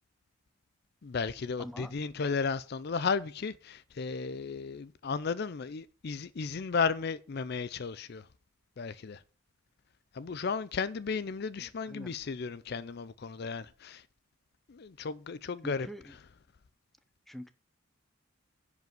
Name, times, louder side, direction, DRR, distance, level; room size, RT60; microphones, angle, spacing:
voice 1, 1.0-8.3 8.8-9.2 10.1-14.1 14.7-15.9, left 5 dB, 50° left, 0.4 m, -34 dB
voice 2, 1.6-2.0 11.6-12.2 15.6-16.2 17.3-17.5, equal, ahead, 0.6 m, -45 dB
10.5 x 5.1 x 7.7 m
head